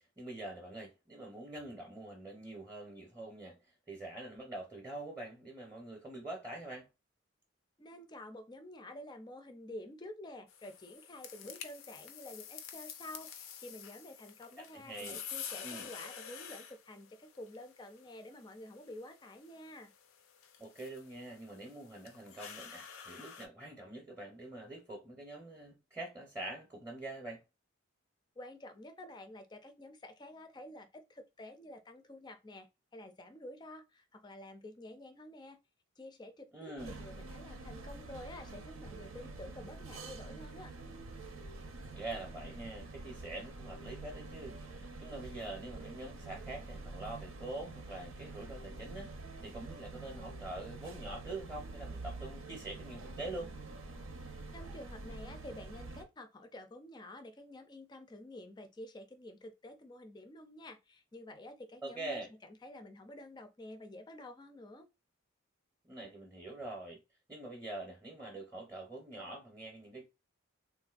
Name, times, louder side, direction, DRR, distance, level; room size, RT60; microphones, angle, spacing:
voice 1, 0.2-3.6 3.9-6.9 14.6-15.2 15.6-15.9 20.6-27.4 36.5-37.0 41.9-49.1 49.4-53.6 61.8-62.3 65.9-67.0 67.3-70.1, right 2 dB, 15° right, 0.6 m, -45 dB
voice 2, 7.8-19.9 28.4-35.6 36.0-40.7 54.5-64.9, left 1 dB, 20° left, 0.4 m, -50 dB
sound 1, 10.5-23.5, left 8 dB, 90° left, 0.5 m, -49 dB
sound 2, 36.8-56.0, right 3 dB, 85° right, 0.6 m, -47 dB
3.5 x 2.5 x 2.3 m
head